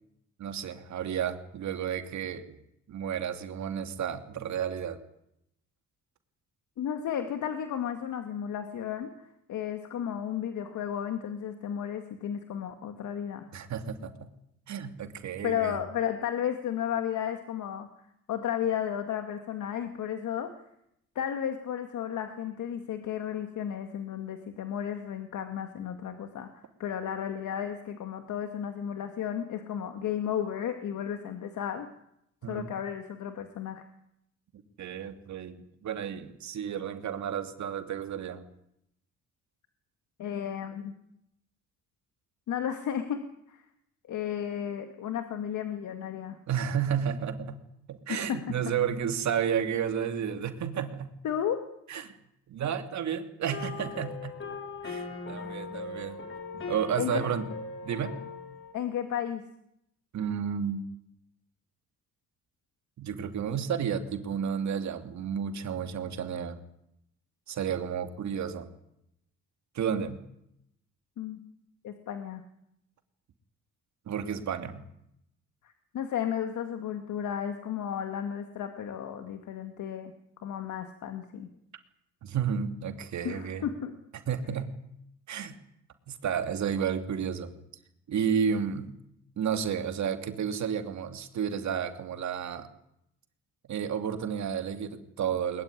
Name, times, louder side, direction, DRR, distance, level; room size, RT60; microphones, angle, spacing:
voice 1, 0.4-2.6 2.9-5.0 13.5-14.3 14.7-15.8 32.4-32.7 34.5-35.6 35.8-38.4 46.5-47.6 47.9-51.1 51.9-52.2 52.5-54.4 54.8-56.2 56.5-57.4 57.8-58.2 60.1-60.8 63.0-66.6 67.5-68.7 69.7-70.2 74.1-74.8 82.2-83.7 84.3-84.8 85.3-85.6 86.1-87.5 88.1-89.0 89.4-92.7 93.7-95.6, right 8 dB, 65° right, 7 dB, 2.8 m, -32 dB
voice 2, 6.8-13.5 15.4-17.9 18.3-20.5 21.2-31.9 32.5-33.8 40.2-40.9 42.5-43.2 43.5-43.7 44.1-46.4 48.1-48.4 51.2-51.6 57.0-57.2 58.7-59.4 71.2-71.4 71.8-72.4 75.6-80.1 80.4-81.5 83.2-83.9, left 9 dB, 75° left, 7 dB, 2.2 m, -33 dB
sound 1, 53.5-58.7, left 4 dB, 40° left, 3.9 m, -39 dB
21.0 x 21.0 x 10.0 m, 0.79 s
cardioid pair, 90°, 30 cm